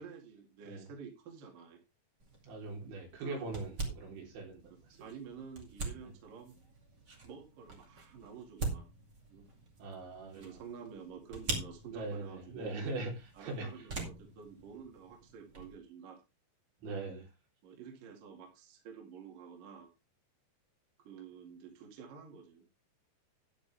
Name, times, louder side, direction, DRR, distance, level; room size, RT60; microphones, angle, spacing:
voice 1, 0.0-1.8 3.2-3.6 5.0-6.6 7.2-8.8 9.3-9.5 10.4-12.8 13.3-16.2 17.6-19.9 21.0-22.6, right 6 dB, 50° right, 1 dB, 3.4 m, -50 dB
sound 1, 2.2-15.8, right 3 dB, 35° right, 1.9 m, -44 dB
voice 2, 2.4-4.6 4.9-5.0 9.8-10.5 11.9-13.7 16.8-17.3, right 3 dB, 75° right, -1 dB, 6.0 m, -41 dB
12.0 x 9.4 x 3.4 m, 0.26 s
omnidirectional pair, 5.4 m